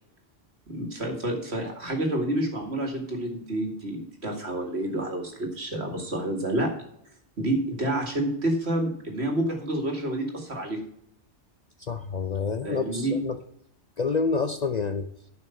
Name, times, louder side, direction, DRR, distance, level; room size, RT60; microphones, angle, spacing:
voice 1, 0.7-6.7 7.4-10.8 12.6-13.2, right 1 dB, 60° right, 3 dB, 2.5 m, -29 dB
voice 2, 11.8-13.4 14.0-15.1, left 4 dB, 45° left, 9 dB, 0.6 m, -28 dB
11.0 x 5.9 x 5.8 m, 0.71 s
omnidirectional pair, 1.2 m